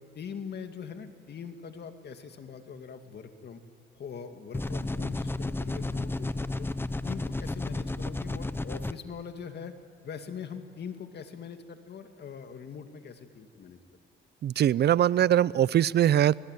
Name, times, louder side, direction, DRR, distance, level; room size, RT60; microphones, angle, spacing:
voice 1, 0.2-3.6 4.0-6.7 7.0-9.7 10.0-13.8, left 6 dB, 55° left, 7 dB, 2.3 m, -42 dB
sound 1, 4.5-8.9, left 2 dB, 10° left, 0.9 m, -32 dB
voice 2, 14.4-16.4, right 11 dB, 55° right, 21 dB, 0.6 m, -22 dB
29.0 x 19.5 x 9.3 m, 2.6 s
cardioid pair, 90°, 20 cm